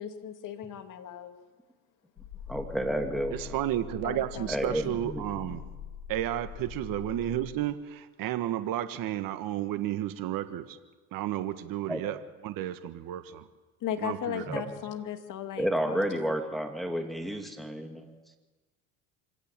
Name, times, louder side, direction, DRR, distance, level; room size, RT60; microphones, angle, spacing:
voice 1, 0.0-1.3 4.0-4.7 13.8-16.0, left 9 dB, 50° left, 2.6 m, -37 dB
sound 1, 2.2-7.5, left 7 dB, 75° left, 6.2 m, -43 dB
voice 2, 2.5-3.6 4.5-5.6 11.9-12.0 14.5-14.6 15.6-18.1, equal, ahead, 2.8 m, -31 dB
voice 3, 3.3-5.6 6.1-10.8 11.1-13.5 14.0-14.6, right 13 dB, 55° right, 1.5 m, -32 dB
25.5 x 17.0 x 7.5 m
supercardioid pair, 85°, 40 cm